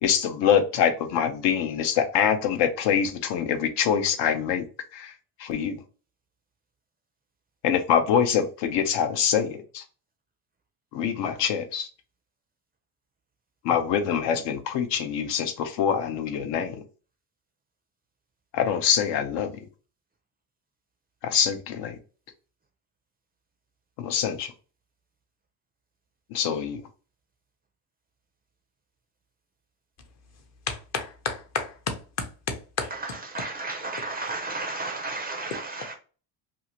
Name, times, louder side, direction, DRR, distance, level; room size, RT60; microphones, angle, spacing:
voice 1, 0.0-4.7 4.9-5.1 5.4-5.8 7.6-9.8 10.9-11.9 13.6-16.8 18.5-19.6 21.2-22.0 24.0-24.5 26.3-26.8, left 8 dB, 70° left, 0.7 m, -25 dB
voice 2, 30.7-32.9, left 5 dB, 40° left, 0.7 m, -32 dB
voice 3, 32.9-35.9, right 3 dB, 20° right, 0.4 m, -33 dB
2.7 x 2.5 x 2.8 m
cardioid pair, 125°, 44 cm